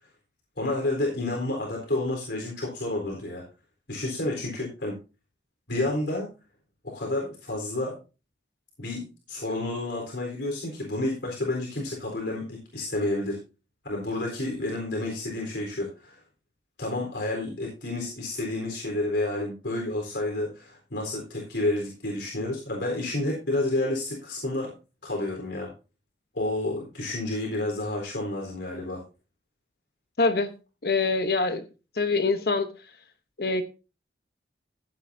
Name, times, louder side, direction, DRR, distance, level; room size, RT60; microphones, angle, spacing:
voice 1, 0.6-3.4 3.9-5.0 5.7-6.3 6.8-8.0 8.8-13.4 13.8-16.2 16.8-24.7 25.0-25.7 26.3-29.0, left 2 dB, 80° left, 4.0 m, -30 dB
voice 2, 30.2-30.5 30.8-31.6 32.0-32.7 33.4-33.6, left 3 dB, 60° left, 1.0 m, -24 dB
15.0 x 9.3 x 2.7 m
head